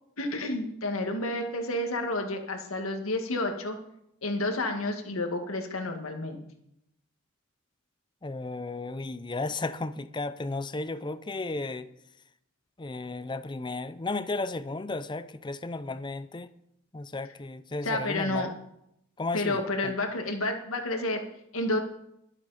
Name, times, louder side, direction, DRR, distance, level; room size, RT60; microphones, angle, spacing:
voice 1, 0.2-3.8 4.2-6.4 17.8-18.5 19.3-21.2 21.5-21.8, left 2 dB, 75° left, 4 dB, 1.9 m, -30 dB
voice 2, 8.2-11.9 12.8-16.5 16.9-18.5 19.2-19.9, left 3 dB, 20° left, 13 dB, 0.6 m, -34 dB
22.0 x 8.1 x 4.2 m, 0.79 s
head